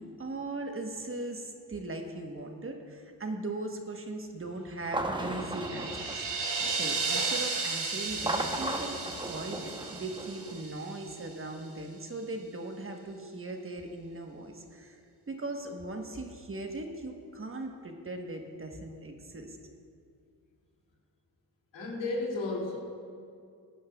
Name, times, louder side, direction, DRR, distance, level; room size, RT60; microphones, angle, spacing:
voice 1, 0.0-6.3 6.7-15.0 15.3-19.6, right 2 dB, 30° right, 3 dB, 1.1 m, -39 dB
sound 1, 4.8-7.0 8.1-10.6, right 1 dB, 10° right, 0.8 m, -36 dB
sound 2, 5.1-11.3, right 4 dB, 70° right, 2.0 m, -34 dB
voice 2, 21.7-22.8, left 2 dB, 85° left, -3 dB, 2.5 m, -33 dB
17.0 x 10.0 x 2.3 m, 2.4 s
cardioid pair, 85°, 43 cm